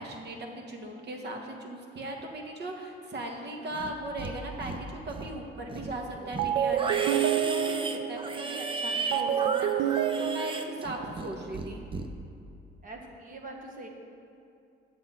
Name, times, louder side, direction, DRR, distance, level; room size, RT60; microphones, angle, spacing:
voice 1, 0.0-11.8, right 1 dB, 60° right, 2 dB, 1.4 m, -38 dB
Livestock farm animals working animals, 3.7-4.3 4.6-5.3 5.7-11.3 11.5-12.1, right 3 dB, 25° right, 0.6 m, -35 dB
sound 1, 5.7-6.0 6.4-11.5, right 10 dB, 80° right, 0.4 m, -29 dB
voice 2, 12.8-13.9, right 2 dB, 45° right, 1 dB, 1.4 m, -44 dB
8.1 x 6.7 x 5.6 m, 2.6 s
cardioid pair, 90°, 20 cm